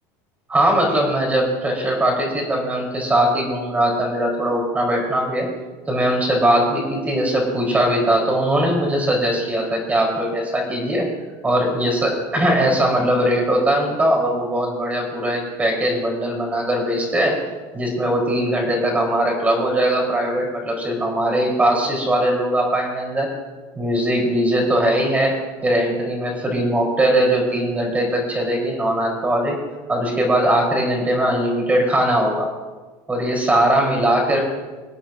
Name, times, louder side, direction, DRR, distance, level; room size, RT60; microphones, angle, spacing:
voice 1, 0.5-5.5 5.9-11.1 11.4-17.4 17.7-23.3 23.8-25.4 25.6-29.6 29.9-32.5 33.1-34.4, right 1 dB, 15° right, -1 dB, 4.0 m, -20 dB
25.5 x 8.5 x 2.7 m, 1.3 s
supercardioid pair, 130°, 10 cm